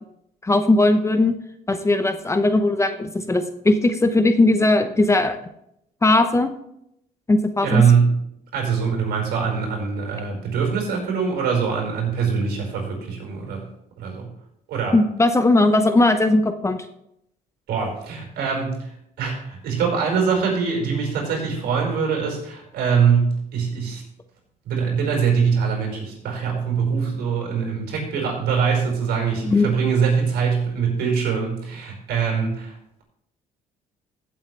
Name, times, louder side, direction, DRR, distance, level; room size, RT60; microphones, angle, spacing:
voice 1, 0.4-1.3 1.7-5.4 6.0-6.5 7.3-7.8 14.9-16.8 29.4-29.7, left 2 dB, 15° left, 8 dB, 0.8 m, -18 dB
voice 2, 7.6-8.2 8.5-13.6 14.0-14.3 14.7-15.0 17.7-18.9 19.2-24.0 24.7-33.0, right 6 dB, 75° right, 0 dB, 5.2 m, -23 dB
15.5 x 8.0 x 3.3 m, 0.77 s
cardioid pair, 110°, 17 cm